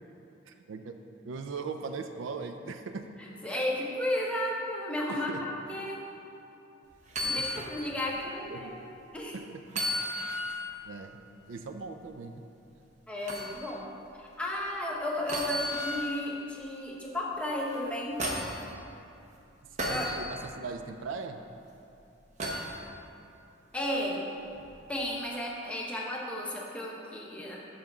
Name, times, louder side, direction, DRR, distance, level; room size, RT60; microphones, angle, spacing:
voice 1, 0.5-0.9 1.2-3.0 3.5-3.6 5.1-5.4 7.2-7.4 8.5-8.8 9.5-9.6 10.5-11.2 11.5-12.4 19.9-21.4, right 4 dB, 75° right, 7 dB, 0.4 m, -39 dB
voice 2, 3.2-5.3 5.7-6.0 7.2-8.8 9.1-9.3 13.1-13.9 14.1-18.3 19.9-20.1 23.7-24.3 24.9-27.6, left 1 dB, 5° left, -3 dB, 0.8 m, -33 dB
sound 1, 7.1-7.7 8.2-8.3 9.7-10.7 13.3-13.6 15.3-16.2 17.7-18.6 19.8-20.2 22.4-22.8 24.5-24.7, equal, 35° right, 0.7 m, -33 dB
5.6 x 5.1 x 5.9 m, 2.7 s
head